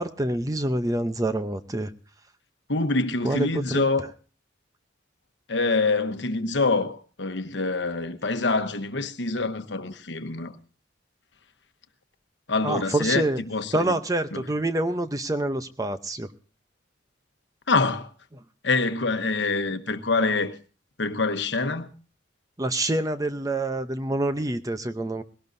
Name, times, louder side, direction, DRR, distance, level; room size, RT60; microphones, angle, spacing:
voice 1, 0.0-1.9 3.2-3.8 12.6-13.4 13.7-16.3 22.6-25.2, right 1 dB, 20° right, 0.7 m, -26 dB
voice 2, 2.7-4.0 5.5-10.6 12.5-14.0 14.3-14.5 17.7-18.1 18.6-20.5 21.0-21.9, left 3 dB, 70° left, 1.1 m, -25 dB
19.5 x 17.5 x 2.7 m
head